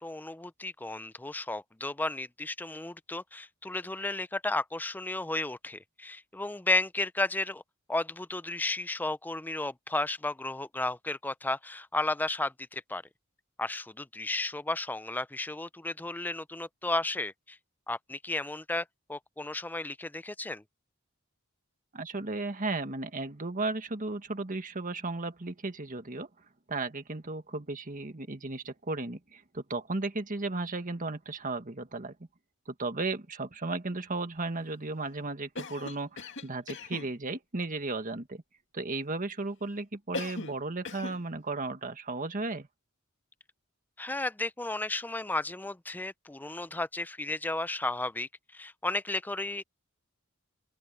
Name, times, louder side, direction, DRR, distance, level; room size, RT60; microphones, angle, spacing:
voice 1, 0.0-7.6 7.9-13.0 13.6-17.6 17.9-20.6 44.0-49.6, left 2 dB, 10° left, 0.5 m, -33 dB
voice 2, 21.9-26.3 26.7-32.1 32.7-38.4 38.7-42.7, right 3 dB, 40° right, 1.6 m, -35 dB
Cough, 35.5-37.1 40.1-40.6 40.8-41.2, left 3 dB, 60° left, 2.2 m, -39 dB
open air
head